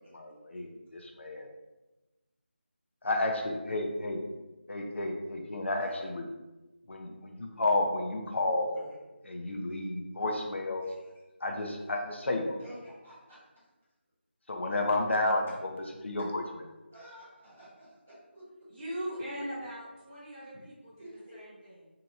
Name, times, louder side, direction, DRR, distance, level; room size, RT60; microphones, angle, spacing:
voice 1, 0.1-1.5 3.0-4.2 4.7-6.2 6.9-8.8 9.3-10.9 11.4-12.6 14.5-15.7 16.0-16.4, left 2 dB, 75° left, 1 dB, 0.6 m, -31 dB
voice 2, 5.8-6.1 8.7-9.0 10.8-11.0 12.5-13.4 16.9-18.4 21.0-21.3, equal, 5° right, -11 dB, 0.3 m, -50 dB
voice 3, 18.7-21.8, equal, 30° right, -10 dB, 0.7 m, -40 dB
2.8 x 2.3 x 3.9 m, 1.1 s
figure-of-eight pair, 180°, 6 cm